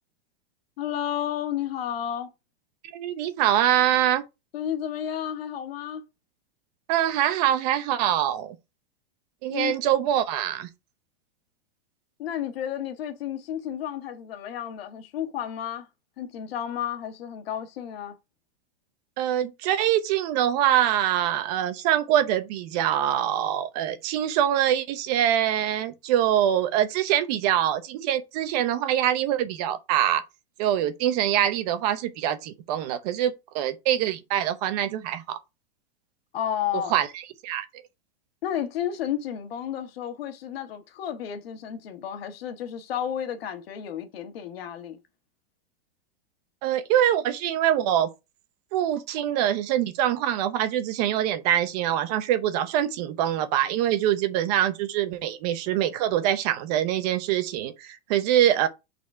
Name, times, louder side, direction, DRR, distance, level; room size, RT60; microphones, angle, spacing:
voice 1, 0.8-2.3 4.5-6.0 9.5-9.7 12.2-15.9 16.2-18.1 36.3-36.9 38.4-45.0, left 10 dB, 70° left, 1.6 m, -32 dB
voice 2, 2.9-4.2 6.9-8.6 9.4-10.7 19.2-30.2 30.6-35.4 36.9-37.1 37.4-37.7 46.6-48.1 48.7-58.7, right 11 dB, 40° right, 0.8 m, -24 dB
6.0 x 4.2 x 4.4 m
supercardioid pair, 160°, 31 cm